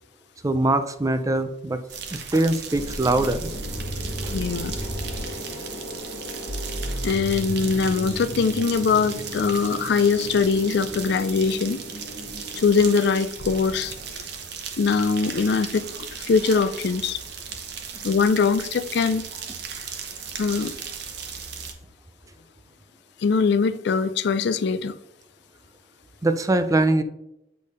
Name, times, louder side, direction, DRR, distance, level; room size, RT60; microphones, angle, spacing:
voice 1, 0.4-1.8 2.1-3.5 4.2-4.3 26.2-27.0, right 2 dB, 15° right, 0.4 m, -22 dB
sound 1, 1.9-21.7, right 6 dB, 55° right, 0.9 m, -36 dB
sound 2, 2.7-13.2, equal, 75° left, 1.7 m, -34 dB
voice 2, 4.3-4.8 7.0-11.8 12.6-14.2 14.8-17.2 18.0-19.3 20.4-20.7 23.2-24.9, left 5 dB, 55° left, 0.4 m, -22 dB
8.3 x 3.4 x 5.4 m
head